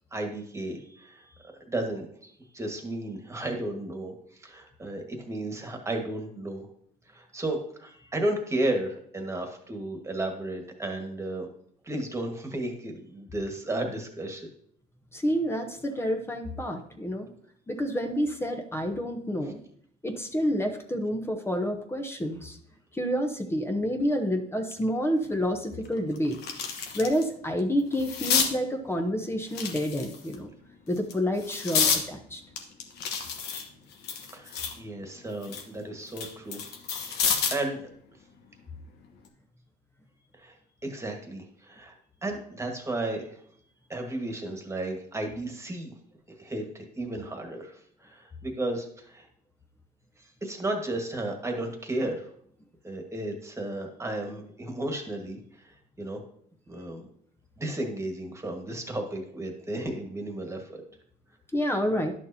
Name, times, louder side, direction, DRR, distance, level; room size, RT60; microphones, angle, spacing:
voice 1, 0.1-6.7 7.1-11.5 11.8-14.5 34.3-36.6 37.1-37.9 40.4-40.6 40.8-41.9 42.2-43.4 43.9-45.9 46.4-49.3 50.2-52.3 52.8-56.2 56.7-57.0 57.6-60.8, right 1 dB, 15° right, 3 dB, 1.6 m, -34 dB
voice 2, 15.1-17.3 17.7-19.6 20.0-22.6 22.9-26.4 26.9-30.5 30.9-32.4 61.5-62.1, equal, 15° left, 5 dB, 0.8 m, -29 dB
sound 1, 25.2-25.3 25.8-27.2 27.6-28.5 29.5-30.3 30.9-32.0 32.6-34.8 35.2-37.7 39.0-39.3, left 6 dB, 75° left, 1.2 m, -29 dB
11.0 x 6.4 x 2.8 m, 0.65 s
cardioid pair, 110°, 17 cm